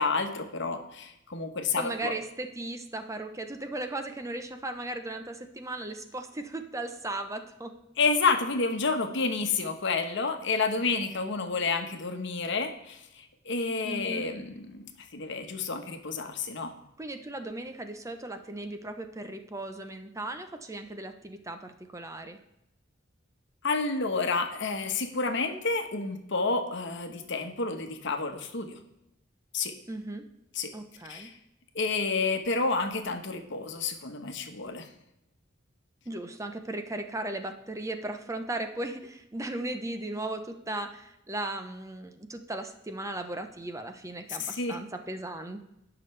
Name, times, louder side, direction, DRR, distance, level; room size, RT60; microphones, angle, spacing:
voice 1, 0.0-2.1 8.0-13.0 13.4-16.7 23.6-28.8 29.5-29.7 30.5-30.7 31.1-31.3 31.7-34.9 44.3-44.8, left 4 dB, 65° left, 6 dB, 1.2 m, -30 dB
voice 2, 1.8-7.8 13.8-14.3 17.0-22.4 29.9-30.2 30.7-31.3 36.1-45.7, right 2 dB, 15° right, 7 dB, 0.7 m, -37 dB
17.5 x 6.0 x 3.3 m, 0.85 s
head